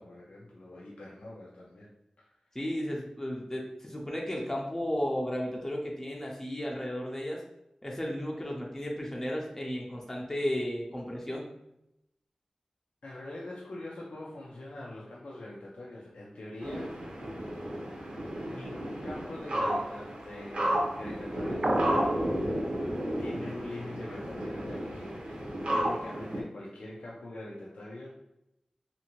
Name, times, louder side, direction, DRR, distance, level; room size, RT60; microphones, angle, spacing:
voice 1, 0.0-1.9 2.2-2.3 13.0-16.9 18.4-22.6 23.2-28.2, left 1 dB, 90° left, -4 dB, 0.5 m, -44 dB
voice 2, 2.5-7.4 7.8-11.5, left 1 dB, 15° left, -2 dB, 0.6 m, -34 dB
sound 1, 16.6-26.4, equal, 80° right, 0.7 m, -32 dB
sound 2, 21.6-22.2, right 1 dB, 40° right, 0.3 m, -30 dB
2.7 x 2.5 x 2.9 m, 0.84 s
wide cardioid pair, 55°, 2 cm